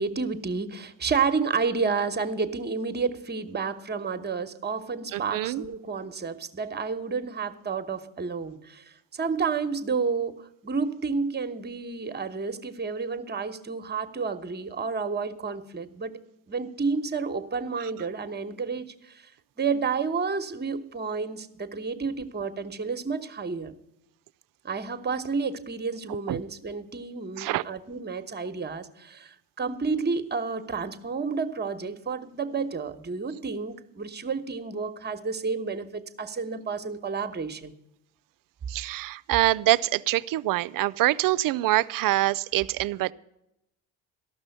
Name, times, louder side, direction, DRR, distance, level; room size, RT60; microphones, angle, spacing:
voice 1, 0.0-16.2 16.5-19.3 19.6-23.7 24.6-37.7, right 5 dB, 25° right, 9 dB, 1.1 m, -30 dB
voice 2, 5.1-5.6 17.8-17.9 26.3-26.4 27.4-27.6 38.7-43.1, right 16 dB, 50° right, 17 dB, 0.5 m, -25 dB
14.0 x 6.1 x 9.0 m, 0.85 s
hypercardioid pair, 65°, 43 cm